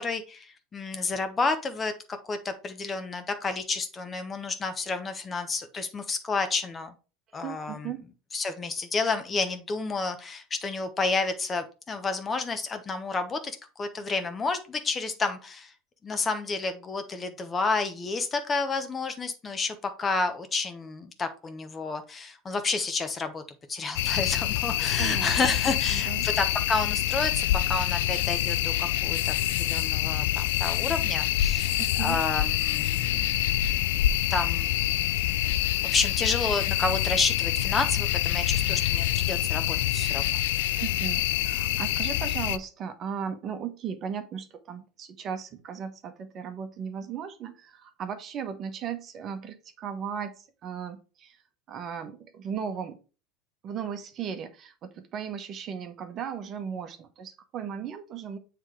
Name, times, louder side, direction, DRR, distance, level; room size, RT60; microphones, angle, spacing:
voice 1, 0.0-1.9 2.3-6.9 7.3-7.9 8.3-15.7 16.0-23.4 23.7-34.7 35.3-35.6 35.9-40.4, left 3 dB, 25° left, 8 dB, 1.1 m, -30 dB
voice 2, 7.4-8.0 25.0-25.3 25.6-26.3 31.8-32.2 40.8-51.4 51.7-53.0 53.6-58.4, right 7 dB, 45° right, 8 dB, 1.0 m, -36 dB
sound 1, 24.0-42.6, left 13 dB, 75° left, 0.4 m, -26 dB
7.4 x 3.4 x 4.7 m, 0.34 s
hypercardioid pair, 90°, 0 cm